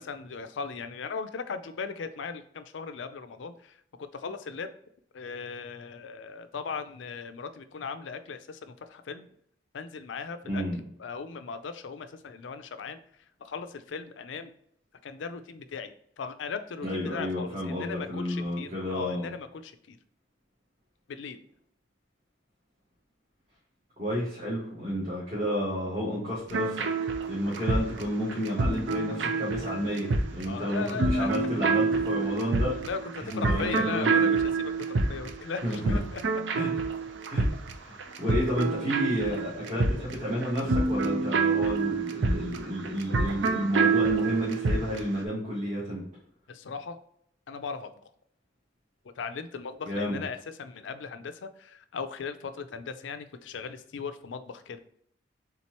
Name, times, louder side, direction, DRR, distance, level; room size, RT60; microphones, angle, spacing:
voice 1, 0.0-4.7 5.1-9.3 9.7-10.6 11.0-13.0 13.4-14.5 15.0-20.0 21.1-21.4 30.4-31.3 31.6-31.7 32.8-33.0 33.3-36.2 46.5-47.0 47.5-47.9 49.2-54.8, left 5 dB, 80° left, 10 dB, 0.4 m, -38 dB
voice 2, 10.5-10.8 16.8-19.3 24.0-26.8 27.3-32.9 33.3-34.3 35.6-36.0 36.5-36.7 37.3-37.5 37.8-46.0 49.8-50.2, equal, 40° right, -8 dB, 1.7 m, -31 dB
sound 1, 26.5-45.1, right 4 dB, 75° right, 0.5 m, -27 dB
4.3 x 3.7 x 2.9 m, 0.69 s
head